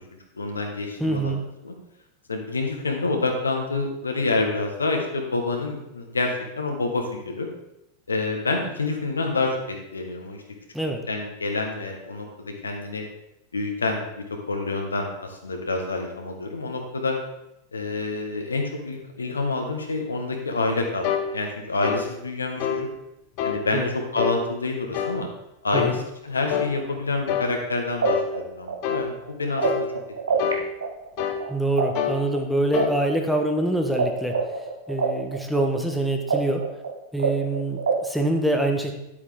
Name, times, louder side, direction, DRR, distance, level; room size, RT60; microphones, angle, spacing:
voice 1, 0.3-1.3 1.6-1.7 2.3-7.5 8.1-10.4 11.1-13.0 13.5-17.1 17.7-22.9 23.4-25.3 25.6-29.8 30.4-30.6, left 3 dB, 75° left, 2 dB, 1.6 m, -28 dB
voice 2, 1.0-1.4 10.7-11.0 23.7-23.9 25.7-26.0 31.5-34.4 34.9-36.6 37.1-38.9, right 1 dB, ahead, 2 dB, 1.2 m, -25 dB
sound 1, 21.0-21.3 21.8-22.1 22.6-22.8 23.4-23.6 24.2-24.4 24.9-25.2 25.7-26.0 26.5-26.7 27.3-27.5 28.0-28.3 28.8-29.1 29.6-29.9 30.4-30.6 31.2-31.4 31.9-32.2 32.7-32.9, left 9 dB, 45° left, 0.9 m, -26 dB
sound 2, 27.6-27.7 28.0-30.5 30.8-34.0 34.3-38.2, right 5 dB, 70° right, 1.3 m, -26 dB
10.5 x 8.5 x 3.6 m, 0.87 s
figure-of-eight pair, 90°, 0 cm